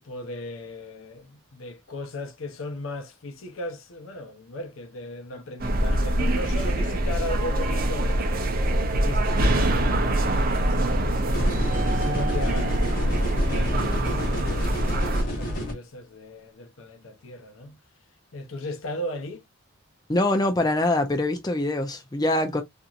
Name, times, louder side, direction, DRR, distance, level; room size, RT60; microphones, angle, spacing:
voice 1, 0.0-8.2 8.5-17.8 18.3-19.4, left 1 dB, 75° left, 0.7 m, -37 dB
sound 1, 5.6-15.2, right 1 dB, 45° right, 0.6 m, -24 dB
sound 2, 11.3-15.7, equal, 45° left, 1.0 m, -30 dB
voice 2, 20.1-22.6, left 1 dB, 20° left, 0.5 m, -24 dB
2.8 x 2.6 x 2.4 m
head